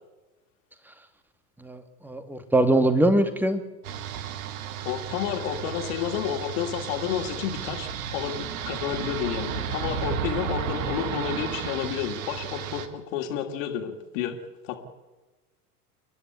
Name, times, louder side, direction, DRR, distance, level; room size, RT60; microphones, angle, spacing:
voice 1, 1.6-3.6, right 1 dB, 5° right, 9 dB, 2.3 m, -22 dB
sound 1, 3.8-12.9, right 8 dB, 60° right, 2.2 m, -33 dB
voice 2, 4.8-14.3 14.6-14.8, left 9 dB, 55° left, 4 dB, 3.0 m, -30 dB
30.0 x 11.0 x 9.5 m, 1.1 s
figure-of-eight pair, 90°, 47 cm